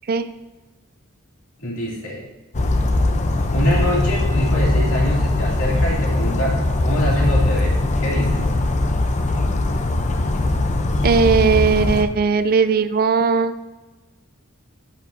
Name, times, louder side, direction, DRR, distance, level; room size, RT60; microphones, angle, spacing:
voice 1, 1.6-2.3 3.5-8.5, equal, 65° left, -3 dB, 2.8 m, -24 dB
Bird vocalization bird call bird song, 2.5-12.0, left 2 dB, 35° left, 0.6 m, -20 dB
voice 2, 11.0-13.5, right 5 dB, 45° right, 11 dB, 0.4 m, -18 dB
11.5 x 8.3 x 2.7 m, 1.2 s
head